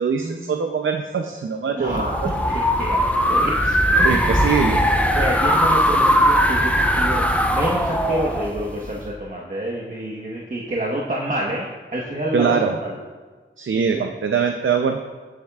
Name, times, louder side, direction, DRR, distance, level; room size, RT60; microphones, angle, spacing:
voice 1, 0.0-2.3 3.6-3.8 4.0-4.8 5.9-6.0 12.3-12.8 13.6-15.0, right 6 dB, 70° right, 5 dB, 0.6 m, -23 dB
voice 2, 1.7-3.5 4.0-4.6 5.1-13.0 13.7-13.8, right 1 dB, 40° right, -3 dB, 1.2 m, -28 dB
sound 1, 1.9-9.1, equal, 5° left, 0.9 m, -19 dB
16.5 x 7.2 x 2.4 m, 1.4 s
wide cardioid pair, 60°, 21 cm